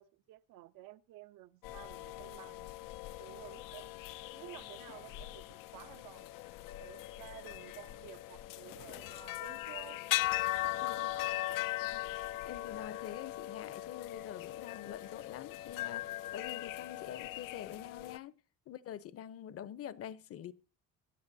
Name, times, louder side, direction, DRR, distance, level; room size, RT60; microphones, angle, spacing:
voice 1, 0.0-2.7 3.2-3.9 4.3-6.3 6.8-10.0 11.1-11.6, right 15 dB, 80° right, 0.8 m, -53 dB
sound 1, 1.6-18.2, left 16 dB, 80° left, 0.6 m, -39 dB
voice 2, 10.8-11.5 11.9-12.0 12.5-18.3 18.7-20.5, left 10 dB, 45° left, 0.8 m, -46 dB
24.0 x 10.5 x 2.7 m
cardioid pair, 140°, 33 cm